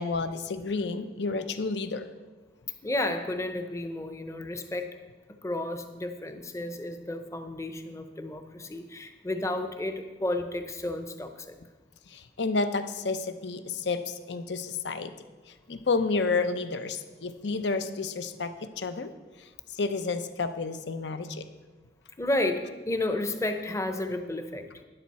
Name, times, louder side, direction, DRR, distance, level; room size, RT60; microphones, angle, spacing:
voice 1, 0.0-2.1 12.1-15.1 15.7-19.1 19.4-21.4, left 4 dB, 75° left, 10 dB, 0.7 m, -30 dB
voice 2, 2.8-5.0 5.4-11.6 22.2-24.7, left 1 dB, 15° left, 7 dB, 0.7 m, -32 dB
12.0 x 10.5 x 4.2 m, 1.3 s
head